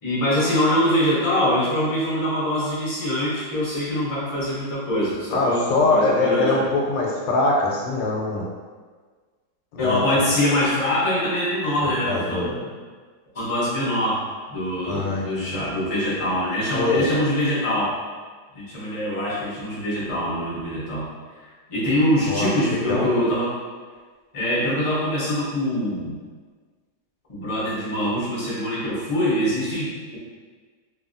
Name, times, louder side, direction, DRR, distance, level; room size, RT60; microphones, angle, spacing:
voice 1, 0.0-6.5 9.8-12.7 13.3-14.2 14.5-17.9 18.5-21.1 21.4-23.5 24.3-26.2 27.3-30.2, left 1 dB, 35° left, -8 dB, 0.5 m, -24 dB
voice 2, 5.3-8.4 9.7-10.3 11.8-12.5 14.8-15.6 16.7-17.1 22.3-23.1, left 2 dB, 85° left, -2 dB, 1.3 m, -23 dB
2.8 x 2.7 x 2.5 m, 1.5 s
omnidirectional pair, 2.0 m